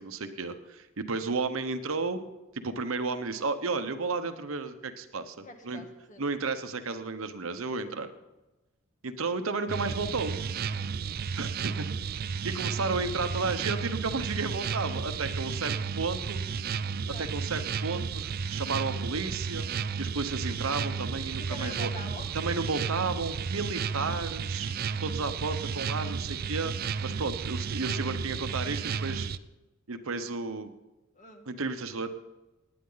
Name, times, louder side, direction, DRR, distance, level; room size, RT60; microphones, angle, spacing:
voice 1, 0.0-2.2 2.5-5.8 6.2-8.1 9.0-10.4 11.4-12.1 12.4-16.4 17.2-19.7 20.0-21.9 22.3-24.7 25.0-26.7 27.0-29.3 29.9-30.7 31.5-32.2, right 4 dB, 75° right, 9 dB, 1.0 m, -33 dB
voice 2, 5.4-6.2 10.7-11.0 17.1-17.3 21.5-22.3 31.1-31.5, left 2 dB, 35° left, 4 dB, 1.6 m, -45 dB
sound 1, 9.7-29.4, right 6 dB, 45° right, 0.4 m, -33 dB
sound 2, 15.5-20.4, left 1 dB, 15° left, 5.5 m, -53 dB
19.0 x 9.6 x 4.0 m, 1.0 s
head